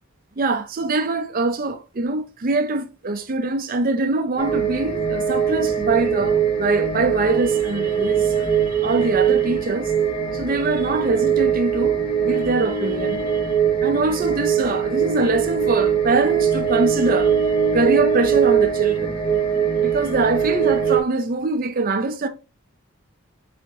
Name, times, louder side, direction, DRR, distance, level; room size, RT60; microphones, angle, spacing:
voice 1, 0.4-9.9 10.3-13.6 13.8-19.2 19.8-22.3, right 3 dB, 40° right, 0.5 m, -23 dB
sound 1, 4.4-21.0, right 7 dB, 25° left, 0.7 m, -21 dB
4.2 x 3.5 x 2.8 m
head